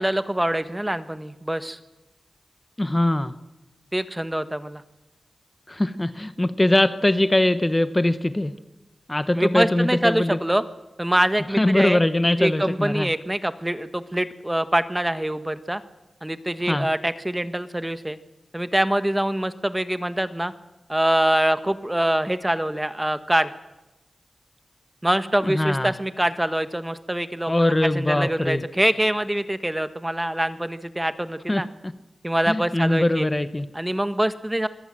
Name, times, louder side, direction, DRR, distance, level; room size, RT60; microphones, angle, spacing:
voice 1, 0.0-1.8 3.9-4.8 9.3-10.6 11.0-12.0 12.4-15.8 16.2-18.2 18.5-20.5 20.9-23.5 25.0-27.5 27.8-31.7 32.2-33.3 33.7-34.7, right 1 dB, 15° right, 11 dB, 1.4 m, -24 dB
voice 2, 2.8-3.3 5.7-8.5 9.1-10.4 11.5-13.1 16.6-16.9 25.4-25.9 27.5-28.6 31.5-31.9 32.5-33.7, left 1 dB, 20° left, 12 dB, 1.1 m, -22 dB
25.0 x 17.5 x 7.6 m, 0.99 s
cardioid pair, 60°, 0 cm